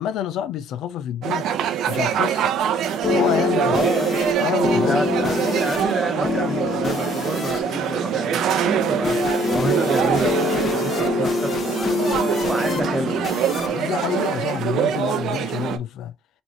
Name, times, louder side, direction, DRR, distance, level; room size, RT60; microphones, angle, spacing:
voice 1, 0.0-1.5 1.9-2.5 3.1-3.8 4.4-5.1 13.6-16.1, left 10 dB, 85° left, 0.5 m, -28 dB
sound 1, 1.2-15.8, right 9 dB, 80° right, 0.7 m, -24 dB
sound 2, 2.6-15.1, left 5 dB, 50° left, 1.3 m, -26 dB
voice 2, 3.6-4.2 4.9-9.2 9.5-12.0 12.5-13.3, right 1 dB, 10° right, 1.3 m, -29 dB
5.1 x 2.7 x 2.9 m
cardioid pair, 90°, 0 cm